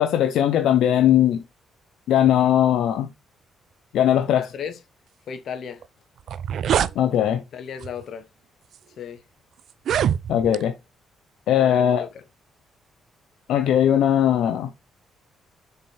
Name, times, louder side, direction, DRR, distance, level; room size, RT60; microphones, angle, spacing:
voice 1, 0.0-1.4 2.1-3.1 3.9-4.5 7.0-7.4 10.3-10.7 11.5-12.1 13.5-14.7, left 10 dB, 80° left, 0.7 m, -19 dB
voice 2, 4.3-4.8 5.3-5.8 7.5-8.3 9.0-9.2 11.5-12.2, left 8 dB, 65° left, 1.2 m, -34 dB
sound 1, 5.8-5.9 6.2-6.9 7.8-8.0 8.7-8.8 9.7-10.6, right 9 dB, 65° right, 0.4 m, -24 dB
6.7 x 4.3 x 3.5 m
cardioid pair, 90°, 0 cm